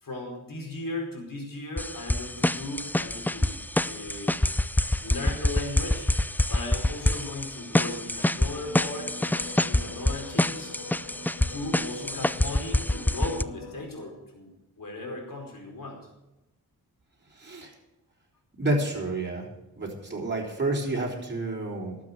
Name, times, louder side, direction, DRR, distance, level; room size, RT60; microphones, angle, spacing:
voice 1, 0.0-3.5 3.8-4.4 5.0-6.1 6.5-10.7 11.5-14.5 14.8-16.0, left 2 dB, 55° left, 1 dB, 4.8 m, -37 dB
sound 1, 1.8-13.4, left 1 dB, 5° left, 0.4 m, -26 dB
sound 2, 8.6-13.9, left 4 dB, 75° left, 1.8 m, -43 dB
voice 2, 17.3-17.7 18.6-19.5 19.8-22.0, right 2 dB, 25° right, -2 dB, 4.1 m, -29 dB
12.0 x 7.7 x 8.1 m, 0.97 s
supercardioid pair, 45°, 39 cm